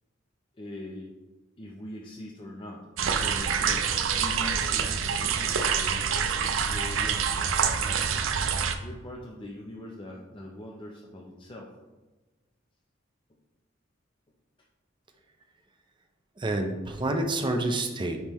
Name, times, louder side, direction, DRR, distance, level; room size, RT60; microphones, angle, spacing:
voice 1, 0.5-1.1 1.6-2.9 3.2-3.9 4.1-7.5 7.8-11.7, left 1 dB, 25° left, -2 dB, 0.6 m, -42 dB
sound 1, 3.0-8.7, right 7 dB, 80° right, 0.5 m, -26 dB
voice 2, 16.4-18.2, right 2 dB, 25° right, 4 dB, 0.5 m, -28 dB
9.6 x 3.6 x 3.0 m, 1.2 s
head